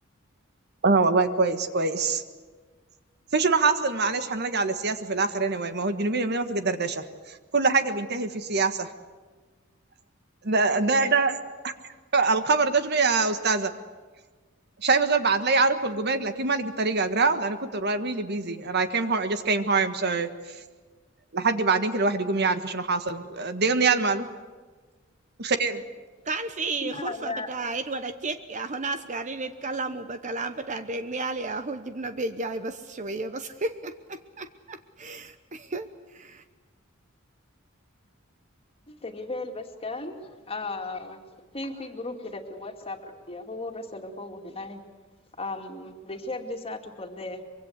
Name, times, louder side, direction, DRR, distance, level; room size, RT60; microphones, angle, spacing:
voice 1, 0.8-2.2 3.3-8.9 10.4-11.4 11.6-11.7 12.1-13.7 14.8-20.3 21.3-24.3 25.4-25.8, right 4 dB, 55° right, 9 dB, 1.6 m, -24 dB
voice 2, 26.3-36.4, right 3 dB, 35° right, 10 dB, 0.9 m, -33 dB
voice 3, 26.8-27.5 38.9-44.8 45.4-47.4, left 2 dB, 30° left, 4 dB, 2.5 m, -36 dB
24.5 x 23.5 x 8.2 m, 1.4 s
head